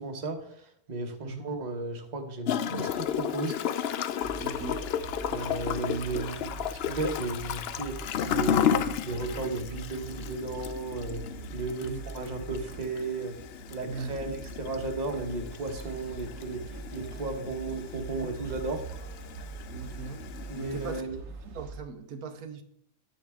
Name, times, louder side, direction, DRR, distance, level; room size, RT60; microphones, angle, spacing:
voice 1, 0.0-3.6 5.3-11.3 11.5-13.4 13.7-18.9 20.5-21.2, right 2 dB, 30° right, 4 dB, 1.1 m, -34 dB
Gurgling / Toilet flush, 2.5-21.0, left 9 dB, 70° left, 0.6 m, -34 dB
sound 1, 4.2-21.8, right 4 dB, 65° right, 1.3 m, -43 dB
voice 2, 4.4-4.8 11.8-12.0 13.9-14.1 19.7-20.2 20.5-21.1 21.5-22.6, right 4 dB, 80° right, 8 dB, 1.2 m, -39 dB
10.5 x 7.8 x 3.5 m, 0.72 s
omnidirectional pair, 1.5 m